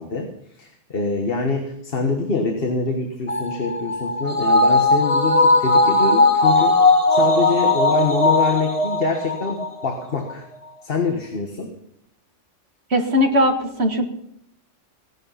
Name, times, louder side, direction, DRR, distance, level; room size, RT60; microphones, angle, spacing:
voice 1, 0.0-6.8 7.1-10.4 10.8-11.7, left 4 dB, 50° left, 4 dB, 1.6 m, -25 dB
sound 1, 3.3-9.9 10.3-10.4, left 2 dB, 30° left, 1.3 m, -18 dB
voice 2, 12.9-14.1, left 1 dB, 55° right, 5 dB, 1.9 m, -19 dB
16.5 x 11.0 x 5.7 m, 0.78 s
omnidirectional pair, 1.3 m